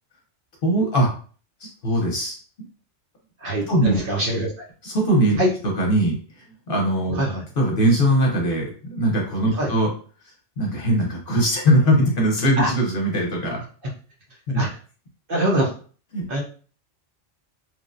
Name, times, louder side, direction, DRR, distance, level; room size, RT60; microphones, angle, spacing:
voice 1, 0.6-1.1 1.6-2.4 3.7-4.0 4.8-5.4 5.6-6.2 6.7-7.2 7.6-9.9 10.6-13.6 14.5-14.6 16.1-16.3, right 1 dB, 50° left, -1 dB, 0.9 m, -20 dB
voice 2, 3.4-4.5 5.4-5.5 7.1-7.4 9.5-9.7 12.6-12.7 14.5-14.7 15.3-15.7 16.3-16.4, right 1 dB, 55° right, -1 dB, 0.8 m, -23 dB
3.1 x 2.1 x 2.5 m, 0.40 s
omnidirectional pair, 1.3 m